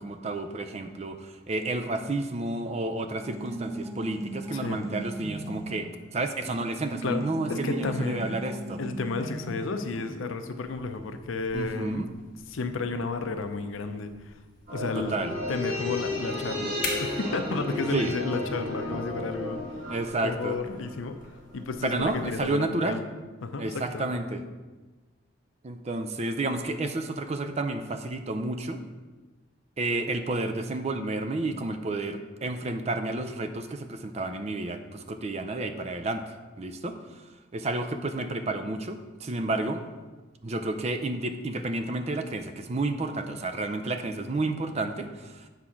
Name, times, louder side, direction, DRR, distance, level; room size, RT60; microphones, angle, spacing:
voice 1, 0.0-8.8 11.5-12.1 14.9-15.3 17.9-18.1 19.9-20.6 21.8-23.0 23.6-24.4 25.6-28.8 29.8-36.2 36.6-37.0 37.5-39.8 40.4-45.4, right 2 dB, 35° right, 8 dB, 0.5 m, -31 dB
sound 1, 3.2-6.0 6.4-10.2, right 1 dB, 15° right, 0.8 m, -38 dB
voice 2, 4.5-4.9 7.0-7.2 7.5-8.3 8.8-12.1 12.5-14.4 14.7-15.2 15.5-19.9 20.2-21.2 21.5-23.0 23.4-24.1, left 3 dB, 85° left, 8 dB, 0.6 m, -32 dB
sound 2, 10.6-22.5, left 4 dB, 40° left, 1.5 m, -45 dB
sound 3, 14.7-21.3 21.5-21.6, left 1 dB, 50° right, 2.0 m, -33 dB
8.0 x 3.7 x 5.7 m, 1.2 s
head